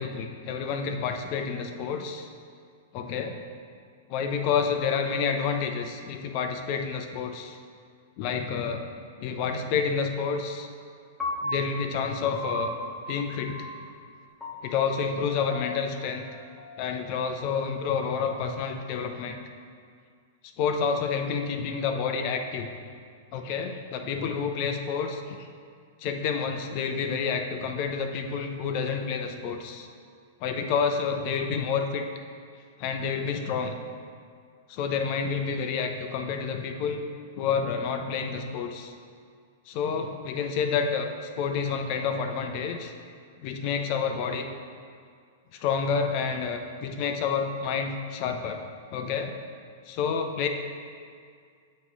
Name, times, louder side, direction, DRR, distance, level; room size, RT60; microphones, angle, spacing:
voice 1, 0.0-2.3 2.9-3.4 4.1-7.6 8.2-8.8 9.2-10.7 11.4-12.8 13.1-13.7 14.6-16.3 16.8-19.4 20.6-22.7 23.3-25.4 26.0-29.9 30.4-32.1 32.8-33.8 34.7-37.1 37.4-38.9 39.7-41.1 41.4-42.9 43.4-44.5 45.5-48.6 48.9-49.3 49.9-50.5, left 6 dB, 50° left, 5 dB, 0.7 m, -29 dB
Piano, 11.2-17.4, left 1 dB, 10° left, 0.9 m, -38 dB
7.6 x 3.2 x 6.1 m, 2.1 s
hypercardioid pair, 115°, 0 cm